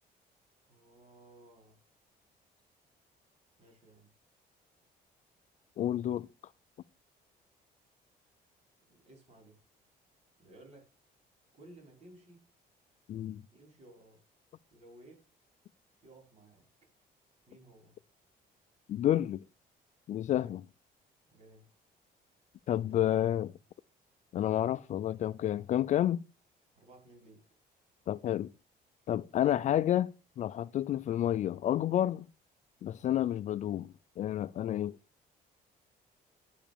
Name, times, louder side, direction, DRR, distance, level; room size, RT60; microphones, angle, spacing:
voice 1, 0.7-1.8 3.6-4.1 8.9-9.6 10.4-11.0 11.5-12.5 13.5-14.2 14.7-15.3 16.0-16.7 17.5-18.0 20.3-20.6 21.3-21.7 22.9-23.3 26.8-27.4, right 1 dB, 40° right, 5.4 m, -57 dB
voice 2, 5.8-6.3 13.1-13.4 18.9-19.4 20.1-20.6 22.7-23.5 24.3-26.2 28.1-28.5 29.1-30.1 30.4-32.3 32.8-35.0, left 11 dB, 45° left, 0.4 m, -30 dB
10.0 x 5.1 x 7.0 m
cardioid pair, 145°, 17 cm